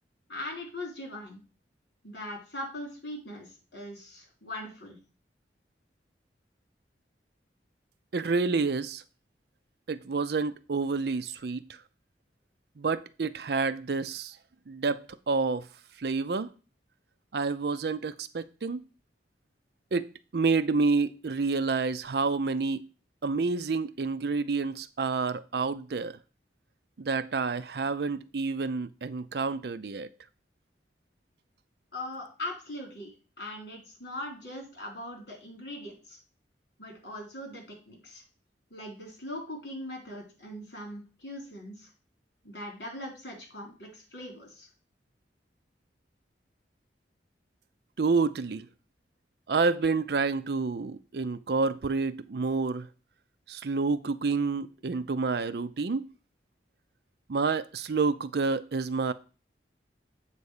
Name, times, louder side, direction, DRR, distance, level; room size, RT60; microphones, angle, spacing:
voice 1, 0.3-1.4 2.0-5.0 31.9-33.1 33.4-36.2 36.8-38.2 38.7-41.9 42.4-44.7, left 1 dB, 65° left, 3.9 m, -40 dB
voice 2, 8.1-9.0 9.9-11.6 12.8-14.4 14.7-15.7 16.0-16.5 17.3-18.8 19.9-20.1 20.3-22.9 23.2-26.1 27.0-30.1 48.0-48.7 49.5-52.9 53.5-56.1 57.3-59.1, right 4 dB, 60° right, 0.5 m, -28 dB
8.0 x 4.1 x 6.6 m
head